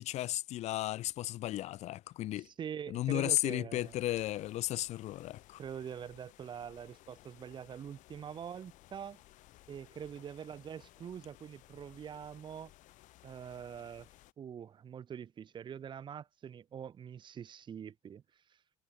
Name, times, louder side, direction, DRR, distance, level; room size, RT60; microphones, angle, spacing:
voice 1, 0.0-2.5 2.9-5.6, left 15 dB, 60° left, 0.4 m, -34 dB
voice 2, 2.4-3.9 5.6-9.2 9.7-12.7 13.2-14.1 14.4-18.2, right 8 dB, 40° right, 0.9 m, -44 dB
sound 1, 3.7-14.3, left 16 dB, 80° left, 5.8 m, -60 dB
cardioid pair, 135°, 13 cm